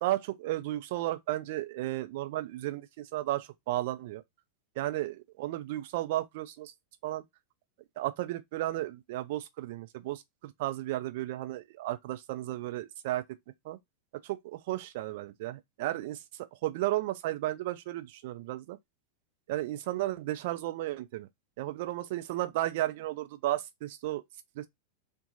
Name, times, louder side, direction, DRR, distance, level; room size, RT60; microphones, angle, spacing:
voice 1, 0.0-4.2 4.8-6.7 7.0-7.2 8.0-13.2 13.6-13.8 14.2-16.2 16.6-18.8 19.5-21.3 21.6-24.2 24.6-24.7, right 15 dB, 50° right, 0.4 m, -34 dB
2.7 x 2.2 x 2.5 m
figure-of-eight pair, 90°, 0 cm